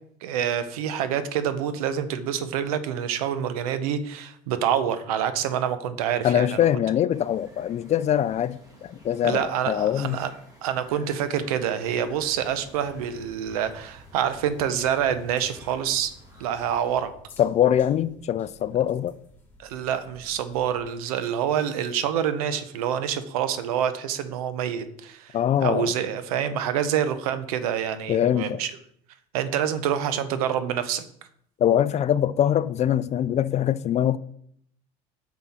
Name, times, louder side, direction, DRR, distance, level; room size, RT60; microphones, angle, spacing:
voice 1, 0.2-6.7 9.2-10.3 10.6-16.1 16.4-17.1 19.6-28.7 29.3-31.0, right 9 dB, 85° right, 0.7 m, -27 dB
voice 2, 6.2-10.2 17.4-19.1 25.3-25.9 28.1-28.6 31.6-34.2, left 10 dB, 35° left, 0.4 m, -23 dB
sound 1, 7.1-17.0, equal, 20° right, 2.3 m, -53 dB
sound 2, 12.0-20.8, equal, 10° left, 2.5 m, -52 dB
6.2 x 5.4 x 4.2 m
supercardioid pair, 80°, 18 cm